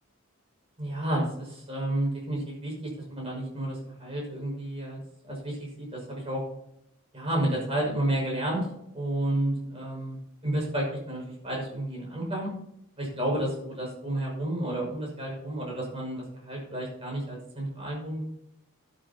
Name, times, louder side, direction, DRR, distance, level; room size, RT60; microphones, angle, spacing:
voice 1, 0.8-5.0 5.3-6.4 7.1-8.7 8.9-12.5 13.0-18.3, right 1 dB, 25° right, -2 dB, 6.0 m, -31 dB
16.5 x 12.0 x 2.9 m, 0.80 s
head